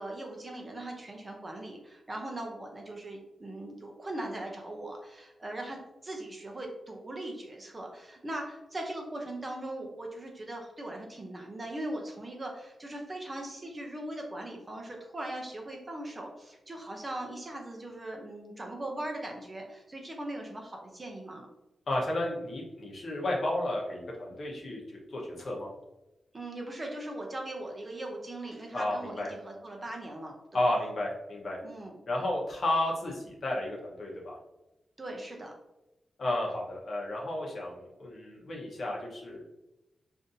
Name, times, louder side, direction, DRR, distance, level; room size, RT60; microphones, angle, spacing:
voice 1, 0.0-21.5 26.3-30.7 31.6-32.0 35.0-35.5, right 1 dB, 25° right, 1 dB, 0.6 m, -40 dB
voice 2, 21.9-24.8 25.1-25.7 28.7-29.3 30.5-31.6 32.1-34.4 36.2-39.4, left 1 dB, 50° left, -2 dB, 0.9 m, -32 dB
5.2 x 2.6 x 2.6 m, 0.94 s
wide cardioid pair, 160°, 0 cm